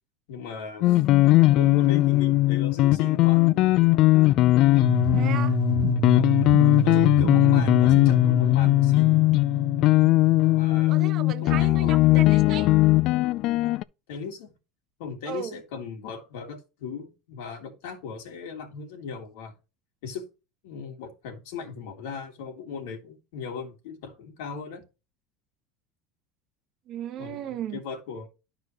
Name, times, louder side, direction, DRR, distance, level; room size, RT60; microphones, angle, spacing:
voice 1, 0.3-1.0 1.5-3.5 6.1-6.5 6.8-9.2 10.5-11.0 11.4-12.7 14.1-14.5 15.0-19.5 20.0-20.3 20.6-24.8 27.2-28.3, left 5 dB, 75° left, 3.0 m, -38 dB
sound 1, 0.8-13.8, left 17 dB, 45° left, 0.3 m, -19 dB
sound 2, 4.8-10.8, right 11 dB, 80° right, 1.0 m, -30 dB
voice 2, 5.1-5.6 10.9-12.7 15.3-15.5 26.9-27.8, right 10 dB, 35° right, 0.8 m, -35 dB
12.0 x 4.9 x 3.0 m
cardioid pair, 165°, 0 cm